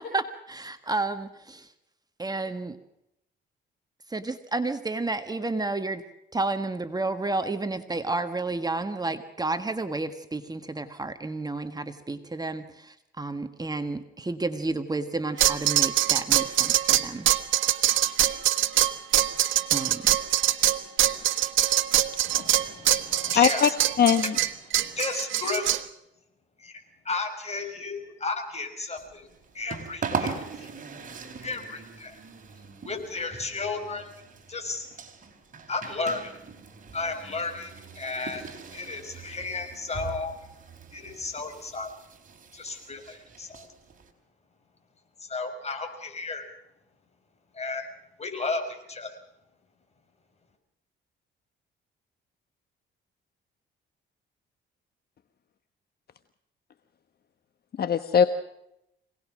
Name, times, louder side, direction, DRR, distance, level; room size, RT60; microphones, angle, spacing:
voice 1, 0.0-1.7 2.2-2.8 4.1-6.0 6.3-17.3 19.7-20.0, right 3 dB, 20° right, 9 dB, 1.6 m, -31 dB
sound 1, 15.4-25.8, right 13 dB, 80° right, 1.4 m, -23 dB
voice 2, 22.2-23.7 24.2-24.3 24.7-25.7 26.6-29.3 29.5-30.7 31.4-32.2 32.8-34.1 34.5-34.9 35.7-36.4 36.9-40.4 40.9-41.9 42.5-43.7 45.2-46.5 47.5-47.9 48.2-49.2, left 3 dB, 35° left, 5 dB, 5.9 m, -34 dB
voice 3, 23.3-23.7 24.0-24.3 57.8-58.3, left 8 dB, 50° left, 10 dB, 1.2 m, -20 dB
sound 2, 29.0-44.1, right 5 dB, 40° right, 4.7 m, -40 dB
26.0 x 19.0 x 6.2 m, 0.83 s
cardioid pair, 90°, 20 cm